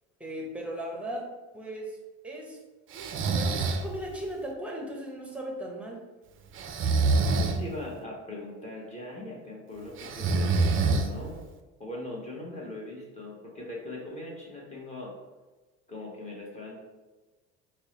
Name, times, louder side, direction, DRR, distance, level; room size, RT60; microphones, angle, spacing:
voice 1, 0.2-1.3 1.5-2.0 2.2-2.6 3.3-6.0, right 1 dB, 5° right, 0 dB, 0.8 m, -37 dB
Breathing, 2.9-3.9 6.6-7.6 10.0-11.4, right 3 dB, 35° right, 0.5 m, -25 dB
voice 2, 7.4-11.4 11.8-15.1 15.9-16.8, left 1 dB, 20° left, -3 dB, 1.1 m, -40 dB
4.5 x 2.1 x 3.0 m, 1.2 s
supercardioid pair, 85°, 34 cm